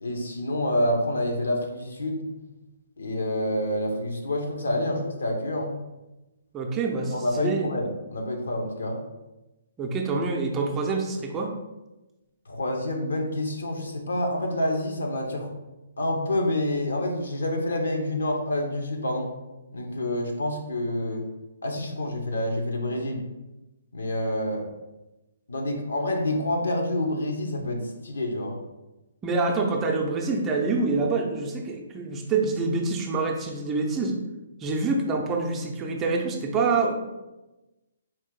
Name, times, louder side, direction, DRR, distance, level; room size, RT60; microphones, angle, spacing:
voice 1, 0.0-2.2 3.0-5.7 7.1-9.0 12.5-15.5 16.0-19.3 19.7-21.2 21.6-23.2 23.9-24.7 25.5-28.5, left 1 dB, 70° left, 1 dB, 0.8 m, -28 dB
voice 2, 6.5-7.7 9.8-11.6 29.2-34.2 34.6-36.9, right 3 dB, 20° right, 0 dB, 0.5 m, -26 dB
4.3 x 2.5 x 3.7 m, 1.0 s
figure-of-eight pair, 130°, 0 cm